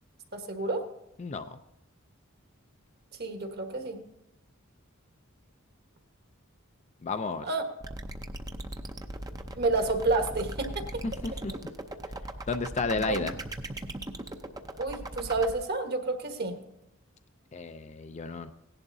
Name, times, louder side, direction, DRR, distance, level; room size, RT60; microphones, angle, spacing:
voice 1, 0.3-0.8 3.2-4.0 7.5-7.6 9.6-10.8 13.1-13.2 14.8-16.6, right 3 dB, 50° right, 5 dB, 1.3 m, -29 dB
voice 2, 1.2-1.6 7.0-7.5 11.0-11.5 12.5-13.3 17.5-18.5, left 3 dB, 35° left, 9 dB, 0.4 m, -32 dB
sound 1, 7.8-15.5, right 1 dB, 20° right, 0.6 m, -38 dB
17.0 x 11.0 x 2.7 m, 0.87 s
head